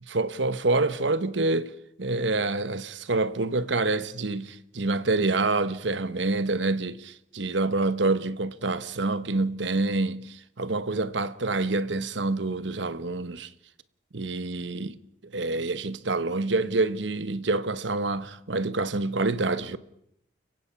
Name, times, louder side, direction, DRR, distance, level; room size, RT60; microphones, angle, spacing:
voice 1, 0.0-1.7 2.0-10.2 10.6-13.5 14.1-14.9 15.2-19.8, right 3 dB, 80° right, 1.1 m, -27 dB
29.5 x 16.5 x 5.9 m
head